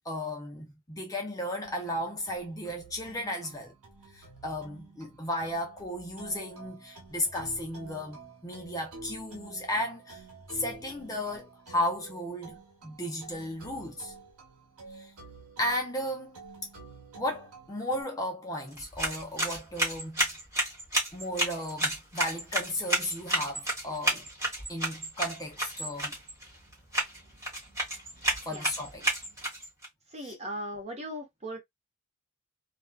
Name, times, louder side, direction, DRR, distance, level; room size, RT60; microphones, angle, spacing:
voice 1, 0.1-3.7 4.1-10.2 10.5-14.1 14.9-15.1 15.6-16.4 17.2-20.3 21.1-24.3 24.7-26.1 28.5-29.0 30.2-30.3, left 1 dB, 15° left, 0.5 m, -34 dB
sound 1, 1.6-18.0, right 3 dB, 85° right, 0.9 m, -50 dB
sound 2, 18.7-29.9, right 1 dB, 15° right, 1.1 m, -32 dB
voice 2, 30.1-31.6, equal, 30° right, 0.9 m, -38 dB
2.5 x 2.3 x 2.2 m
head